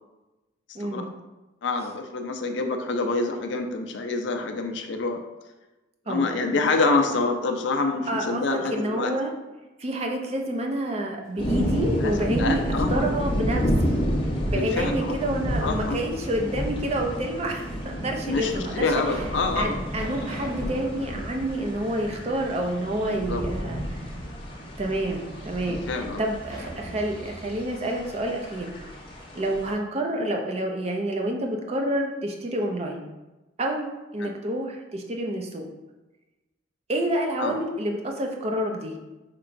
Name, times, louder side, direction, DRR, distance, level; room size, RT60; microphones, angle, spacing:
voice 1, 0.7-1.1 6.1-6.2 8.1-9.3 9.8-12.6 12.9-14.0 14.4-18.9 19.5-24.1 24.8-28.7 29.3-33.0 33.6-35.6 36.9-39.0, right 1 dB, 35° right, 2 dB, 0.4 m, -28 dB
voice 2, 1.6-5.2 6.1-9.1 12.0-13.1 14.6-15.2 15.6-16.0 18.3-19.8 23.1-23.4 25.7-26.2 34.2-34.3 37.4-37.5, left 3 dB, 70° left, 5 dB, 0.4 m, -27 dB
sound 1, 11.2-12.2 12.7-13.9 15.2-16.0 16.9-17.0 17.8-17.9 18.5-22.6 23.0-23.1 26.4-29.2, right 1 dB, 5° left, 1.3 m, -42 dB
sound 2, 11.4-29.7, equal, 25° left, 0.7 m, -30 dB
4.4 x 2.9 x 2.5 m, 1.1 s
head